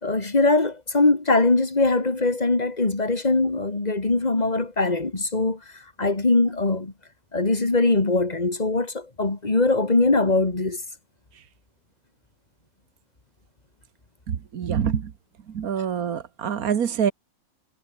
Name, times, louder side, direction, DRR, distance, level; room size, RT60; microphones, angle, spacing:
voice 1, 0.0-5.6 6.0-6.9 7.3-10.8, left 3 dB, 30° left, 2.4 m, -21 dB
voice 2, 14.3-15.1 15.5-17.1, right 8 dB, 80° right, 1.7 m, -26 dB
omnidirectional pair, 1.5 m